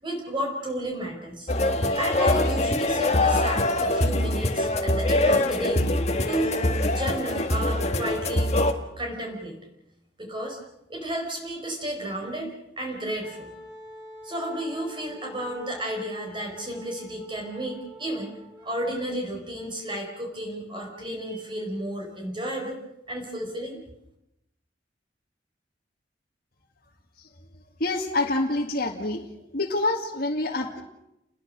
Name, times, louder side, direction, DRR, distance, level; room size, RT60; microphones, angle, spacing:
voice 1, 0.0-1.5 2.0-5.8 6.3-6.6 7.0-8.5 9.0-9.6 10.2-10.6 10.9-13.5 14.2-22.8 23.1-23.8, right 1 dB, 25° right, 1 dB, 4.6 m, -32 dB
sound 1, 1.5-8.7, left 1 dB, 40° left, 1.7 m, -23 dB
Wind instrument woodwind instrument, 13.2-19.2, left 1 dB, 5° right, 6.0 m, -46 dB
voice 2, 27.8-29.3 29.5-30.8, left 2 dB, 55° left, -1 dB, 2.2 m, -26 dB
29.5 x 20.5 x 6.6 m, 0.86 s
head